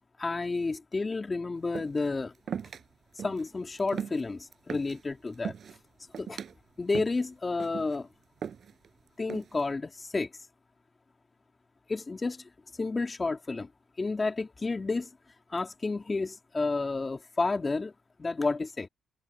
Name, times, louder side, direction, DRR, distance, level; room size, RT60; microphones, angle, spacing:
voice 1, 0.2-2.3 3.2-5.5 6.2-6.4 6.8-8.1 9.2-10.3 11.9-12.4 12.8-13.7 14.0-15.1 15.5-17.9 18.2-18.9, left 3 dB, 25° left, 2.9 m, -31 dB
sound 1, 1.7-2.1 2.5-2.8 3.2-3.5 3.8-5.0 5.3-5.8 6.1-6.5 6.9-7.2 7.6-8.0 8.4-8.9 9.3-9.7, right 7 dB, 55° right, 6.5 m, -38 dB
cardioid pair, 90°, 0 cm